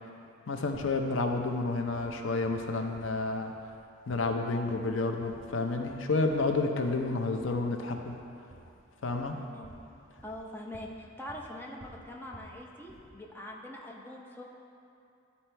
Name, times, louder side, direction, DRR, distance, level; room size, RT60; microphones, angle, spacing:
voice 1, 0.5-3.5 4.1-8.1 9.0-9.3, left 3 dB, 85° left, 4 dB, 0.6 m, -30 dB
sound 1, 0.7-1.0 1.3-1.6 1.9-2.2 2.4-3.2 3.5-3.8 4.1-4.4 4.7-4.9 5.2-5.5 5.8-6.0 6.3-6.6 6.9-7.1 7.4-8.8 9.1-9.9 10.2-11.0 11.3-11.5 11.8-12.6 12.9-13.3, right 1 dB, 35° right, 1.1 m, -53 dB
voice 2, 9.3-9.7 10.2-14.4, left 1 dB, 10° left, -2 dB, 0.6 m, -43 dB
12.0 x 4.3 x 4.5 m, 2.6 s
head